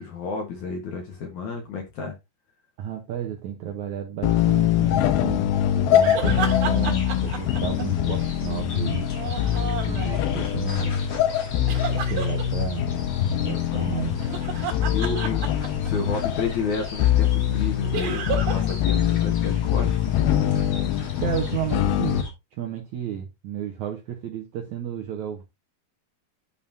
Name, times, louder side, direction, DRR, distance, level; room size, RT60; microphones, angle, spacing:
voice 1, 0.0-2.1 13.5-13.9 14.9-19.9, left 5 dB, 60° left, 2.3 m, -31 dB
voice 2, 2.8-9.1 9.8-11.0 11.9-12.9 13.4-14.3 21.2-22.3 22.5-25.4, right 9 dB, 80° right, 1.6 m, -32 dB
sound 1, 4.2-22.2, left 11 dB, 75° left, 2.4 m, -23 dB
sound 2, 6.0-8.4 9.1-10.5 11.7-12.4 14.1-16.1 17.9-18.7 19.0-19.1 22.0-22.1, right 7 dB, 65° right, 3.2 m, -32 dB
sound 3, 6.2-22.3, left 4 dB, 40° left, 2.2 m, -38 dB
11.5 x 5.4 x 2.7 m
omnidirectional pair, 4.9 m